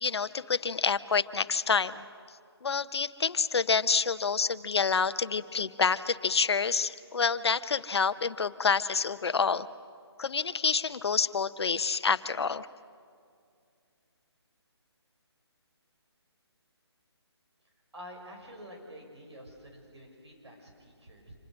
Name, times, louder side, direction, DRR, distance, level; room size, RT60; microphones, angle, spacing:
voice 1, 0.0-2.0 2.6-9.7 10.2-12.7, left 5 dB, 70° left, 13 dB, 0.9 m, -28 dB
voice 2, 17.9-21.3, equal, 75° right, 1 dB, 6.5 m, -48 dB
27.0 x 26.5 x 6.3 m, 2.3 s
figure-of-eight pair, 155°, 14 cm